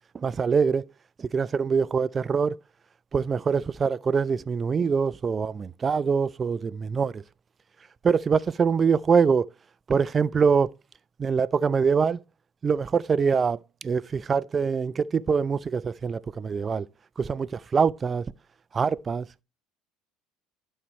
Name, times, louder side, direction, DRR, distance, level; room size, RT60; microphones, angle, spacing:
voice 1, 0.1-0.9 1.2-2.6 3.1-7.2 8.0-9.5 9.9-10.7 11.2-12.2 12.6-16.9 17.2-18.3 18.7-19.3, right 6 dB, 30° right, 0.3 m, -24 dB
12.0 x 4.4 x 3.0 m
hypercardioid pair, 75°, 0 cm